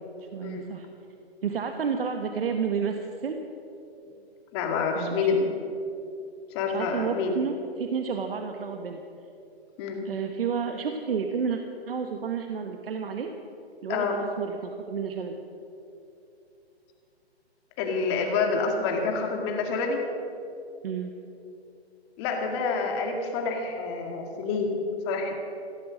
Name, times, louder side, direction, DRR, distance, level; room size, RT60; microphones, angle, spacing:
voice 1, 0.3-0.9 1.4-3.4 4.9-5.4 6.7-9.0 10.0-11.6 11.9-13.3 13.8-15.4 20.8-21.1, right 6 dB, 60° right, 5 dB, 1.2 m, -31 dB
voice 2, 4.5-5.5 6.5-7.3 9.8-10.1 13.9-14.2 17.8-20.0 22.2-24.8 25.1-25.4, left 4 dB, 25° left, 3 dB, 2.1 m, -27 dB
16.0 x 14.0 x 6.3 m, 2.7 s
hypercardioid pair, 150°, 33 cm